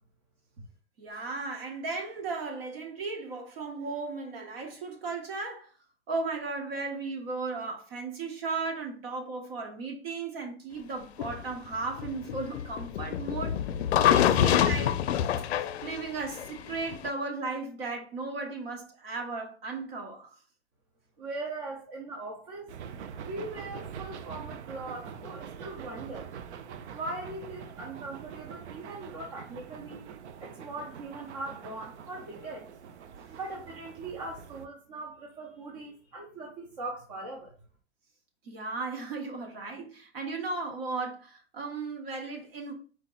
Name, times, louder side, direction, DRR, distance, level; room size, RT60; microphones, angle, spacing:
voice 1, 1.0-5.7 6.1-13.6 14.0-15.0 15.8-20.4 33.3-33.4 38.4-42.7, right 3 dB, 55° right, 1.3 m, -35 dB
sound 1, 11.2-17.1, left 10 dB, 65° left, 0.5 m, -26 dB
voice 2, 21.2-22.8 23.2-26.3 26.9-30.1 30.4-32.7 33.3-37.5, right 2 dB, 35° right, 0.9 m, -40 dB
sound 2, 22.7-34.7, right 7 dB, 75° right, 0.6 m, -44 dB
4.5 x 2.9 x 3.9 m
supercardioid pair, 165°, 34 cm